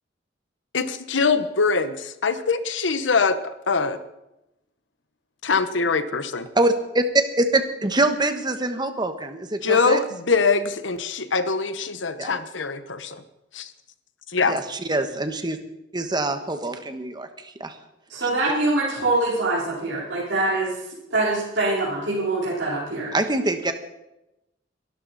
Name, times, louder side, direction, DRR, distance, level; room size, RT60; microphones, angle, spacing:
voice 1, 0.7-2.0 2.2-4.0 5.4-6.5 9.6-13.2 13.5-13.7 14.3-14.6, left 4 dB, 85° left, 11 dB, 1.1 m, -23 dB
voice 2, 6.5-7.0 7.4-10.0 12.2-12.3 14.5-15.6 15.9-17.8 18.2-18.3 23.1-23.7, right 2 dB, 25° right, 7 dB, 1.3 m, -24 dB
voice 3, 18.1-23.1, right 2 dB, 80° right, -7 dB, 4.1 m, -24 dB
23.0 x 12.5 x 4.2 m, 0.92 s
head